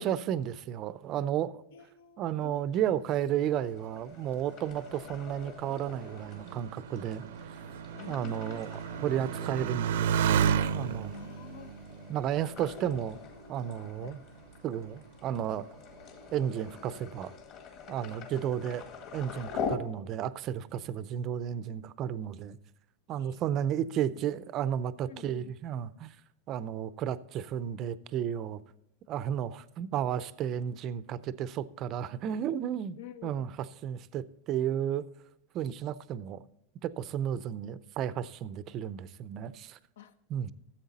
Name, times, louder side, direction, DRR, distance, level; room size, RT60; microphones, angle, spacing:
voice 1, 0.0-1.6 2.2-7.2 8.1-10.2 10.7-11.1 12.1-13.2 13.5-14.2 14.6-15.7 16.3-17.3 17.9-22.6 23.1-26.1 26.5-28.6 29.1-33.0 33.2-33.5 33.8-35.0 35.5-36.4 36.8-39.8 40.3-40.5, right 10 dB, 30° right, 0.5 m, -33 dB
voice 2, 1.7-2.7 7.9-9.2 11.1-11.7 14.0-14.2 23.2-24.3 25.1-25.5 33.0-33.5 40.0-40.1, left 10 dB, 75° left, 0.9 m, -50 dB
sound 1, 3.4-19.8, left 6 dB, 35° left, 1.7 m, -44 dB
Motorcycle, 4.4-13.4 14.1-14.7, right 8 dB, 80° right, 0.6 m, -33 dB
14.5 x 7.8 x 4.1 m
supercardioid pair, 170°, 0 cm